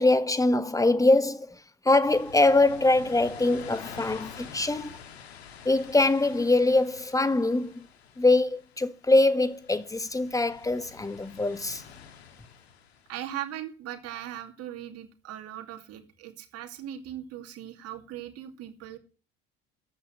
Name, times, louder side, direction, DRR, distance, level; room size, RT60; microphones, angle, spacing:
voice 1, 0.0-1.6 1.8-5.0 5.6-7.8 8.2-11.8, left 2 dB, 10° left, 1.3 m, -23 dB
sound 1, 2.0-13.2, left 7 dB, 75° left, 2.0 m, -47 dB
voice 2, 13.1-19.0, right 11 dB, 50° right, 2.7 m, -39 dB
13.5 x 9.0 x 7.5 m
figure-of-eight pair, 65°, 32 cm